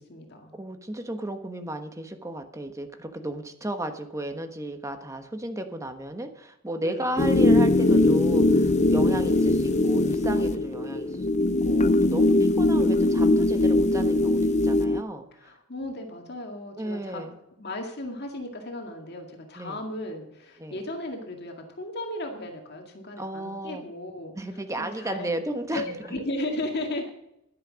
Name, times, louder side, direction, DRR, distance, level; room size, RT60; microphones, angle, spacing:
voice 1, 0.0-0.6 6.8-7.1 12.5-12.9 15.3-17.3 17.5-24.3 24.8-25.3 25.7-27.1, left 1 dB, 55° left, 3 dB, 2.1 m, -35 dB
voice 2, 0.5-15.5 16.7-17.4 19.6-19.8 20.6-20.8 23.2-23.8 24.3-26.2, right 1 dB, 15° right, 7 dB, 1.2 m, -34 dB
sound 1, 7.2-15.0, left 2 dB, 35° left, 0.6 m, -21 dB
11.5 x 9.9 x 6.3 m, 0.83 s
head